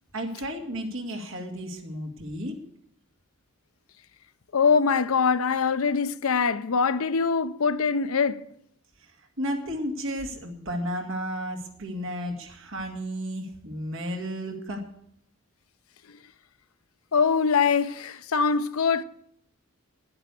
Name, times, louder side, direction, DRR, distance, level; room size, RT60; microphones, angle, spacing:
voice 1, 0.1-2.6 9.4-14.8, equal, 60° right, 2.2 m, -33 dB
voice 2, 4.5-8.4 17.1-19.0, left 5 dB, 65° left, 0.6 m, -23 dB
10.5 x 9.8 x 8.3 m
head